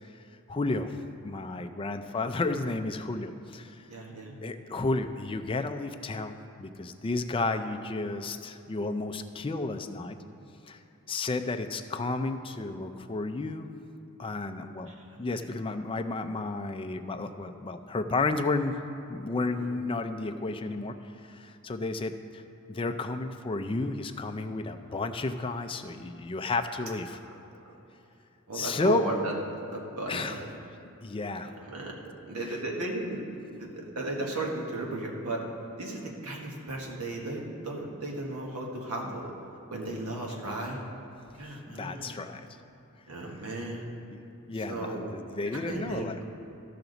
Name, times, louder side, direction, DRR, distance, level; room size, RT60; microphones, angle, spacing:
voice 1, 0.5-0.9 1.2-3.7 4.4-10.2 10.7-10.8 11.1-13.7 14.2-14.9 15.2-18.7 19.1-20.9 21.2-22.1 22.7-27.2 28.5-29.0 30.1-30.4 31.0-31.5 32.4-32.6 40.4-40.6 41.7-42.4 44.1-44.2 44.5-46.2, left 3 dB, 25° left, 7 dB, 0.4 m, -32 dB
voice 2, 3.9-4.3 14.9-15.2 19.6-19.7 28.5-29.3 29.7-30.5 31.4-31.9 32.3-35.4 35.8-39.3 39.7-40.8 41.4-42.2 43.1-43.8 44.7-45.1 45.5-46.2, right 2 dB, 75° right, -1 dB, 1.4 m, -35 dB
14.0 x 5.8 x 4.0 m, 2.9 s
head